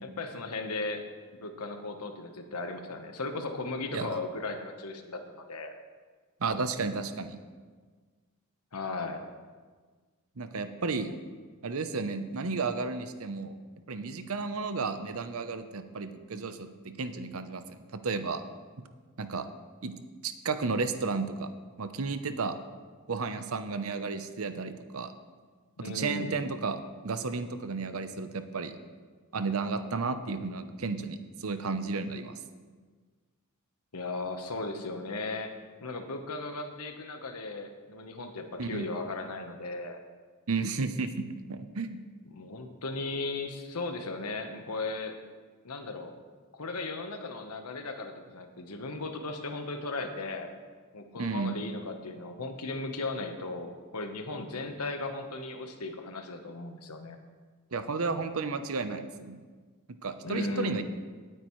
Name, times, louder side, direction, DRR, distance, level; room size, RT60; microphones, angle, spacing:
voice 1, 0.0-1.1 1.3-5.7 8.7-9.2 25.8-26.4 33.9-35.5 35.8-40.0 42.3-45.2 45.6-46.1 46.5-50.5 50.9-57.2 60.2-60.8, left 3 dB, 90° left, 6 dB, 1.2 m, -36 dB
voice 2, 6.4-7.4 10.4-11.1 11.6-13.5 13.9-18.4 19.2-19.5 19.8-19.9 20.2-21.5 21.8-22.6 23.1-25.1 25.8-28.8 29.3-32.3 38.6-38.9 40.5-42.0 51.2-51.6 57.7-59.4 60.0-60.8, right 4 dB, 65° right, 9 dB, 0.8 m, -33 dB
18.0 x 9.0 x 3.2 m, 1.5 s
head